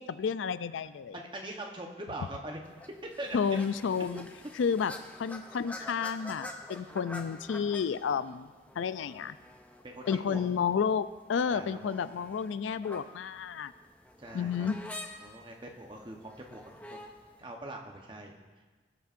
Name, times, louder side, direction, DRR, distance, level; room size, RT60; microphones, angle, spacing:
voice 1, 0.0-1.2 3.3-4.3 4.5-8.5 8.8-9.4 10.1-13.7 14.3-14.8, left 6 dB, 85° left, 14 dB, 0.4 m, -31 dB
voice 2, 1.1-2.6 3.2-3.4 4.1-4.2 9.8-10.4 11.5-11.9 14.2-14.7 15.2-17.0 17.4-18.3, right 1 dB, 25° right, 1 dB, 0.9 m, -42 dB
sound 1, 2.6-17.4, left 1 dB, 10° left, 0.5 m, -48 dB
19.0 x 8.2 x 2.6 m, 1.3 s
head